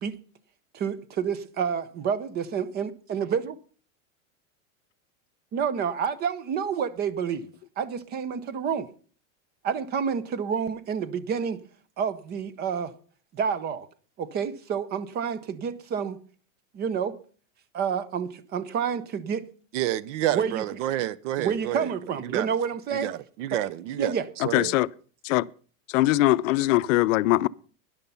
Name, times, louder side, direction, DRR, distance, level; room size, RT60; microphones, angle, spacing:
voice 1, 0.7-3.6 5.5-7.5 7.8-8.9 9.6-11.6 12.0-12.9 13.3-13.9 14.2-16.2 16.7-17.2 17.7-19.4 20.3-20.6 21.4-23.1 23.9-24.3, right 7 dB, 25° right, 0.7 m, -29 dB
voice 2, 19.7-21.9 22.2-22.5 23.0-24.1 24.4-24.7, right 13 dB, 60° right, 0.8 m, -29 dB
voice 3, 24.4-24.9 25.2-25.5 25.9-27.5, left 17 dB, 70° left, 0.6 m, -21 dB
13.0 x 10.5 x 5.5 m
supercardioid pair, 160°, 41 cm